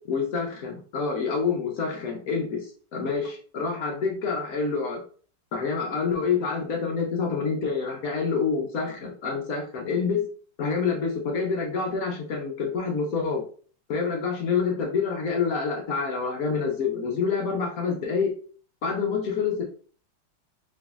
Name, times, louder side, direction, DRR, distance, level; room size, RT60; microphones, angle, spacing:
voice 1, 0.0-5.0 5.5-10.3 10.6-13.4 13.9-18.3 18.8-19.6, left 5 dB, 60° left, 0 dB, 1.0 m, -27 dB
5.0 x 2.6 x 2.3 m, 0.43 s
omnidirectional pair, 2.0 m